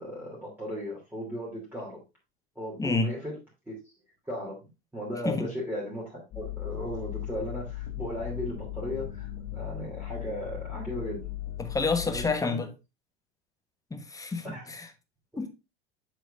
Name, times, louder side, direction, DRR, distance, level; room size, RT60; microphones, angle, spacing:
voice 1, 0.0-2.0 2.5-3.4 3.7-3.8 4.3-11.3 12.0-12.7 14.4-14.7, equal, 5° right, 2.9 m, -36 dB
voice 2, 2.8-3.1 5.2-5.5 11.6-12.7 13.9-14.9 15.4-15.5, left 4 dB, 10° left, 1.1 m, -29 dB
sound 1, 6.3-12.3, left 13 dB, 40° left, 1.6 m, -37 dB
7.7 x 6.4 x 2.5 m
figure-of-eight pair, 75°, 32 cm